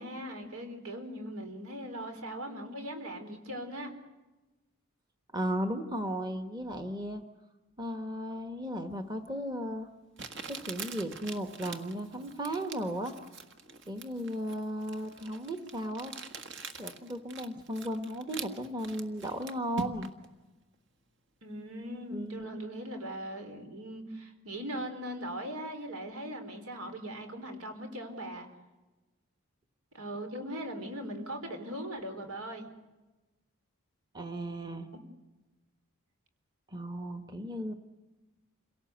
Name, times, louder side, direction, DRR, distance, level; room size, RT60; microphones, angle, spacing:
voice 1, 0.0-3.9 21.4-28.5 29.9-32.7 34.9-35.0, equal, 80° right, 6 dB, 4.1 m, -40 dB
voice 2, 5.3-7.2 7.8-9.9 10.5-13.1 13.9-16.1 16.8-20.1 22.1-22.6 34.1-34.9 36.7-37.7, equal, 20° right, 7 dB, 1.3 m, -35 dB
Crumpling crinkling, 9.3-9.4 10.2-20.3, right 4 dB, 55° right, 1.7 m, -44 dB
28.0 x 17.5 x 8.0 m, 1.1 s
head